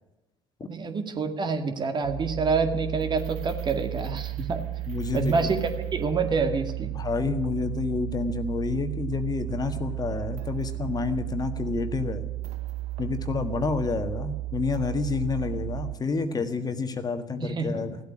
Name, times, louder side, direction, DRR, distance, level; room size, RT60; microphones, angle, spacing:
voice 1, 0.7-4.6 5.1-6.9 17.4-17.8, right 4 dB, 40° right, 6 dB, 2.1 m, -27 dB
sound 1, 2.0-16.0, right 17 dB, 65° right, 0.8 m, -34 dB
voice 2, 4.9-5.5 6.9-12.3 13.0-18.0, left 4 dB, 30° left, 8 dB, 1.5 m, -29 dB
15.0 x 8.4 x 10.0 m, 1.0 s
hypercardioid pair, 70°, 12 cm